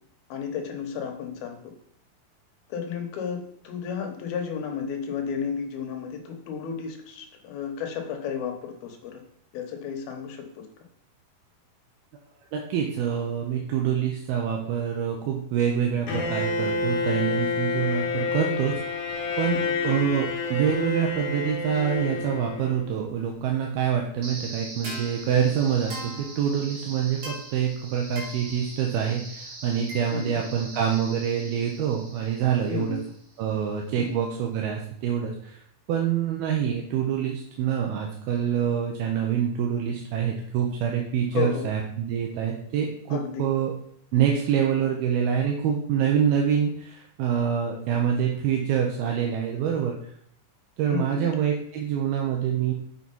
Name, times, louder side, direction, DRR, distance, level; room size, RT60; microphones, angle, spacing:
voice 1, 0.3-1.6 2.7-9.2 9.5-10.7 19.5-19.8 30.1-30.4 32.7-33.0 34.0-34.1 41.3-41.7 43.1-43.5 50.9-51.3, left 7 dB, 80° left, 3 dB, 3.1 m, -32 dB
voice 2, 12.5-18.7 19.4-19.6 19.8-33.0 33.4-35.6 35.9-43.7 44.1-50.1 50.8-52.7, right 8 dB, 80° right, 1 dB, 2.7 m, -26 dB
Bowed string instrument, 16.1-23.0, left 4 dB, 60° left, 2.6 m, -29 dB
sound 1, 24.2-33.3, right 2 dB, 55° right, 3.6 m, -41 dB
6.7 x 6.2 x 5.4 m, 0.64 s
omnidirectional pair, 4.4 m